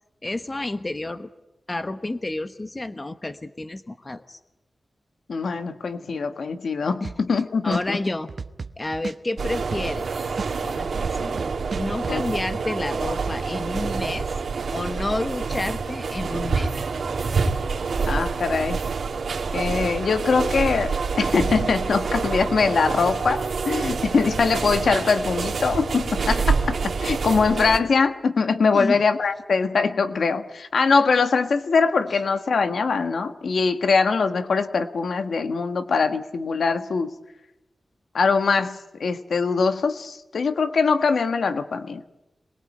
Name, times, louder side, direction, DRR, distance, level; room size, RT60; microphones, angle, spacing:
voice 1, 0.2-1.3 1.7-4.4 7.0-7.1 7.6-8.3 8.8-10.1 10.6-14.3 14.7-16.7 28.7-29.0, left 2 dB, 25° left, 10 dB, 1.1 m, -30 dB
voice 2, 5.3-8.0 12.1-12.2 18.1-18.8 19.5-37.1 38.1-42.0, left 4 dB, 75° left, 9 dB, 1.5 m, -22 dB
sound 1, 7.0-7.4 7.7-10.1 10.4-12.2, right 4 dB, 55° right, 0.9 m, -33 dB
sound 2, 9.4-27.8, right 4 dB, 80° right, 2.9 m, -27 dB
27.0 x 21.5 x 8.7 m, 0.99 s
wide cardioid pair, 145°, 0 cm